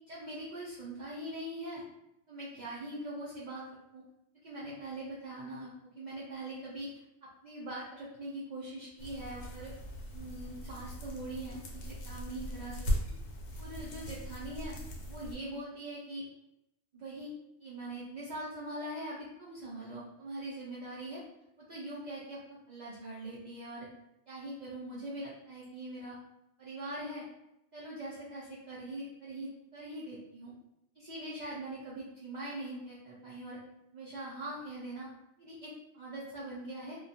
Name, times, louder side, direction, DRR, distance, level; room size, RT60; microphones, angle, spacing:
voice 1, 0.1-1.8 2.3-3.6 3.9-4.0 4.4-5.7 6.0-6.9 7.2-9.7 10.1-12.9 13.6-14.8 15.1-16.2 16.9-17.3 17.6-21.2 21.6-23.9 24.3-26.2 26.6-27.2 27.7-30.5 31.0-33.6 33.9-35.1 35.4-37.0, right 1 dB, 85° right, -7 dB, 0.4 m, -42 dB
sound 1, 9.0-15.4, equal, 80° left, 1.0 m, -39 dB
2.2 x 2.1 x 2.7 m, 0.85 s
omnidirectional pair, 1.3 m